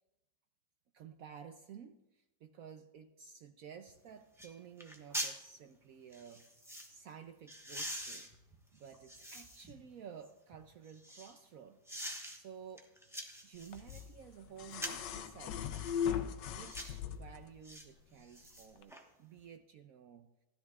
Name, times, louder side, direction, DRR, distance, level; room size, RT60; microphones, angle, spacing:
voice 1, 0.9-6.4 6.9-8.3 8.7-11.8 12.3-12.9 13.4-15.6 16.5-20.3, right 7 dB, 75° right, 6 dB, 0.8 m, -53 dB
sound 1, 3.9-4.0 4.4-4.5 4.8-5.4 6.1-6.9 7.5-9.7 10.2-11.4 11.9-12.4 12.8-14.1 14.7-15.1 15.7-15.9 16.5-17.0 17.6-17.8 18.2-19.0 19.4-19.5, equal, ahead, 0.7 m, -44 dB
sound 2, 13.7-17.5 18.8-18.9, left 8 dB, 70° left, 1.2 m, -39 dB
16.0 x 13.0 x 2.4 m, 0.94 s
omnidirectional pair, 2.1 m